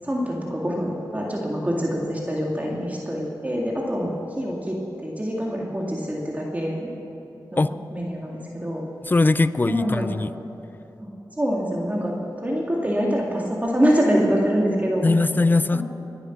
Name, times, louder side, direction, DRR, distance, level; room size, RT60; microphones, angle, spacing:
voice 1, 0.0-6.9 7.5-8.8 9.6-10.1 11.4-12.1 12.4-15.1 15.7-15.8, equal, 20° right, -2 dB, 2.1 m, -25 dB
voice 2, 9.0-10.3 15.0-15.8, left 3 dB, 25° left, 15 dB, 0.5 m, -20 dB
21.5 x 8.1 x 5.8 m, 2.9 s
cardioid pair, 60°, 8 cm